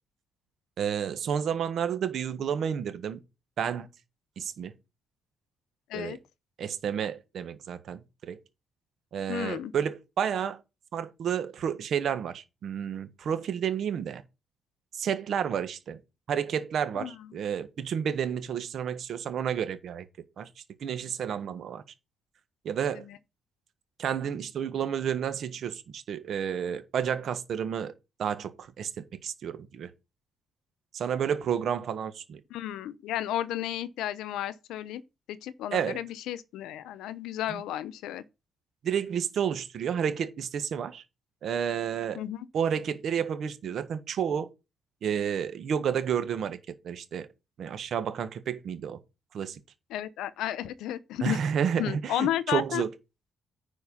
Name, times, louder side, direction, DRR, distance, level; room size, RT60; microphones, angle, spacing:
voice 1, 0.8-3.2 3.6-3.9 4.4-4.7 5.9-6.2 6.6-8.4 9.1-10.6 10.9-14.2 14.9-16.0 16.3-20.1 20.4-20.5 20.8-21.8 22.6-23.1 24.0-27.9 28.2-29.9 30.9-32.4 35.7-36.0 37.5-37.6 38.8-41.0 41.4-42.2 42.5-44.5 45.0-46.6 46.8-47.3 47.6-49.0 49.3-49.6 51.2-52.9, right 8 dB, 65° right, 1.4 m, -31 dB
voice 2, 9.3-9.7 17.0-17.3 22.9-23.2 32.5-35.0 35.3-38.2 42.1-42.5 49.9-51.4 51.8-52.8, left 12 dB, 90° left, 0.7 m, -33 dB
9.8 x 4.5 x 5.6 m
cardioid pair, 90°, 0 cm